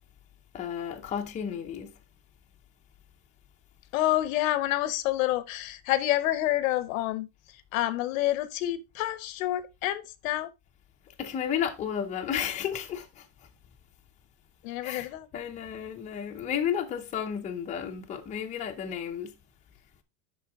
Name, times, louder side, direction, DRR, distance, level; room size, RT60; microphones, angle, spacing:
voice 1, 0.5-1.9 11.2-13.3 14.8-19.4, left 8 dB, 15° left, 0.7 m, -32 dB
voice 2, 3.9-7.3 7.7-10.5 14.6-15.3, left 15 dB, 70° left, 0.9 m, -28 dB
11.0 x 4.0 x 3.4 m
supercardioid pair, 160°, 42 cm